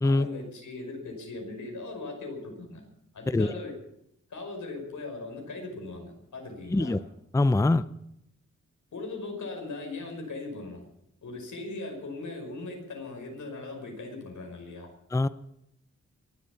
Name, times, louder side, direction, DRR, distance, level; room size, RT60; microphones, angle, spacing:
voice 1, 0.0-2.8 3.1-3.7 4.3-7.0 8.9-10.8 11.2-14.9, left 3 dB, 85° left, 2 dB, 5.4 m, -39 dB
voice 2, 7.3-7.8 15.1-15.3, left 2 dB, 10° left, 15 dB, 0.5 m, -23 dB
23.5 x 8.7 x 7.1 m, 0.78 s
wide cardioid pair, 85°, 29 cm